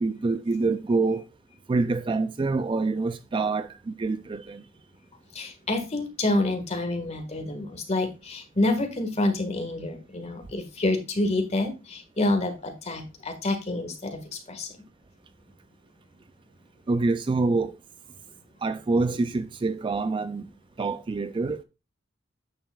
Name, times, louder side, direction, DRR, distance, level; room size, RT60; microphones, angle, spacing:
voice 1, 0.0-1.2 1.7-4.6 16.9-17.8 18.6-20.5 20.8-21.6, right 3 dB, 25° right, 0.3 m, -26 dB
voice 2, 5.3-14.8, left 2 dB, 35° left, 1.6 m, -28 dB
9.0 x 6.7 x 2.3 m
head